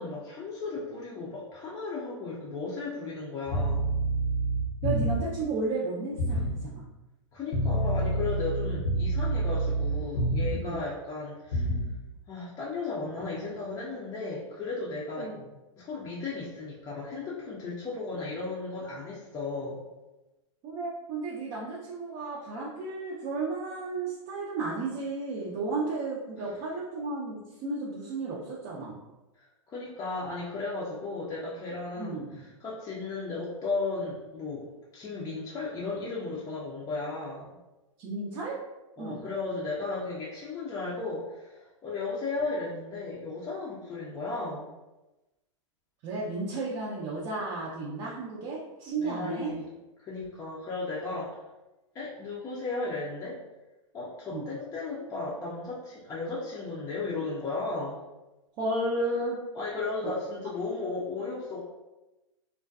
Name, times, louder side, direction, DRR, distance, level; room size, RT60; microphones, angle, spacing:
voice 1, 0.0-3.9 7.3-11.7 12.3-15.3 15.8-19.8 26.4-26.5 29.7-34.7 34.9-37.6 39.0-44.7 49.0-49.7 50.0-51.4 51.9-53.4 53.9-58.0 59.5-61.6, left 3 dB, 20° left, -7 dB, 0.5 m, -35 dB
sound 1, 3.5-5.4 6.2-6.6 7.5-10.7 11.5-11.9, right 2 dB, 60° left, 0.7 m, -28 dB
voice 2, 4.8-6.9 10.5-10.8 15.2-15.5 20.6-29.0 32.0-32.4 38.0-38.6 39.0-39.2 46.0-49.5 54.3-54.5 58.6-59.4 60.0-60.1, right 2 dB, 35° right, -5 dB, 0.5 m, -33 dB
2.5 x 2.1 x 2.3 m, 1.0 s
hypercardioid pair, 120°, 16 cm